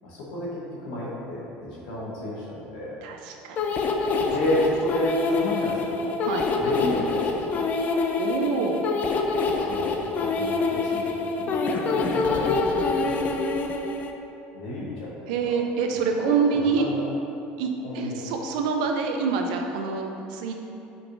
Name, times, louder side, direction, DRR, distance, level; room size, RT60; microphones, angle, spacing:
voice 1, 0.0-3.0 4.3-6.3 6.6-7.7 9.6-9.9 10.2-13.3 14.5-15.3 16.2-16.3 16.8-17.0 17.8-18.2, left 1 dB, 90° left, -6 dB, 1.0 m, -31 dB
voice 2, 3.0-3.7 6.2-6.5 8.2-8.8 15.3-16.9 17.6-17.7 17.9-20.5, right 5 dB, 85° right, 3 dB, 0.4 m, -26 dB
sound 1, 3.6-14.1, left 3 dB, 40° left, 0.3 m, -26 dB
5.1 x 3.0 x 2.5 m, 2.8 s
supercardioid pair, 110°, 4 cm